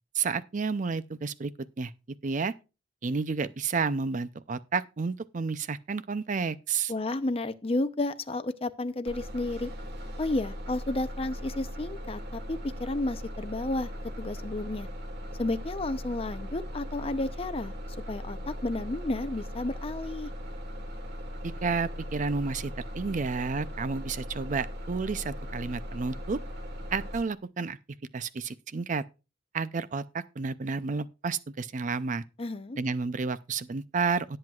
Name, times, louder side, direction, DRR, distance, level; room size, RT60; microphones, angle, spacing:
voice 1, 0.1-1.5 1.8-1.9 2.2-2.5 3.0-6.9 21.4-26.4 26.9-27.8 28.1-29.0 29.5-32.2 32.8-34.4, right 4 dB, 45° right, 0.5 m, -31 dB
voice 2, 6.9-9.7 10.2-13.9 14.2-14.9 15.4-17.7 18.1-20.3 32.4-32.8, left 2 dB, 35° left, 0.7 m, -32 dB
Bus, 9.1-27.2, equal, 65° right, 1.4 m, -39 dB
18.0 x 7.7 x 2.4 m
head